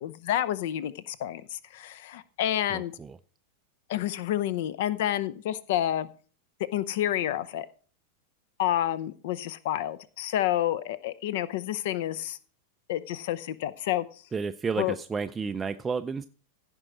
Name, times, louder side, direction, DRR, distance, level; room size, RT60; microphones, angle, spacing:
voice 1, 0.0-2.9 3.9-6.1 6.7-7.7 8.6-12.4 12.9-14.2 14.8-15.0, left 12 dB, 55° left, 18 dB, 0.6 m, -29 dB
voice 2, 2.7-3.2 14.3-16.3, right 5 dB, 15° right, 9 dB, 0.4 m, -31 dB
15.5 x 5.2 x 4.5 m, 0.40 s
figure-of-eight pair, 90°, 0 cm